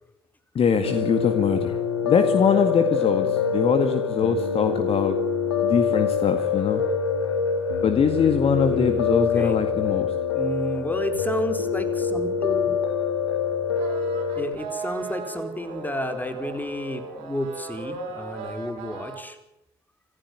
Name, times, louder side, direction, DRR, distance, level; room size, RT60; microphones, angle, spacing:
voice 1, 0.5-1.8 2.0-5.2 5.6-6.8 7.8-10.1, left 6 dB, 50° left, 8 dB, 2.1 m, -22 dB
Piano, 0.8-14.5, left 6 dB, 85° left, 1.8 m, -25 dB
voice 2, 8.7-9.6 10.3-12.8 14.4-19.4, left 1 dB, 15° left, 8 dB, 4.6 m, -31 dB
sound 1, 13.8-19.2, right 4 dB, 70° right, 4.6 m, -36 dB
27.5 x 15.5 x 9.4 m, 0.84 s
figure-of-eight pair, 40°, 13 cm